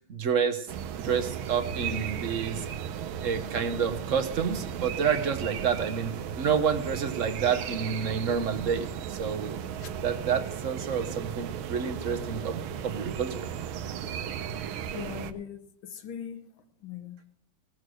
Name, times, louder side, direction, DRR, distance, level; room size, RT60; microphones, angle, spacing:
voice 1, 0.1-0.7 1.0-2.6 3.2-8.9 9.2-9.6 10.0-13.5, right 6 dB, 55° right, 0.9 m, -29 dB
sound 1, 0.7-15.3, right 8 dB, 80° right, 1.5 m, -36 dB
voice 2, 14.9-16.5 16.8-17.2, left 8 dB, 80° left, 1.8 m, -40 dB
17.5 x 6.5 x 6.2 m
omnidirectional pair, 2.2 m